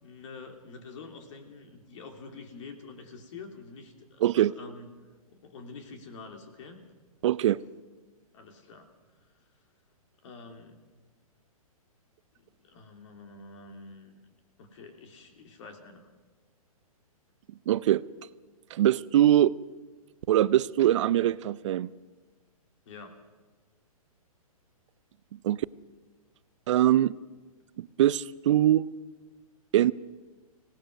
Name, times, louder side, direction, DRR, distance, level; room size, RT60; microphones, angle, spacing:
voice 1, 0.0-4.9 5.4-6.8 8.3-8.9 10.2-10.8 12.6-14.3 14.6-16.1 22.9-23.2, left 4 dB, 55° left, 4 dB, 3.2 m, -47 dB
voice 2, 4.2-4.5 7.2-7.6 17.7-18.0 18.7-19.5 20.3-21.9 25.4-25.7 26.7-27.1 27.8-28.9 29.7-29.9, right 12 dB, 55° right, 19 dB, 0.6 m, -22 dB
25.5 x 18.0 x 6.2 m, 1.3 s
hypercardioid pair, 125°, 19 cm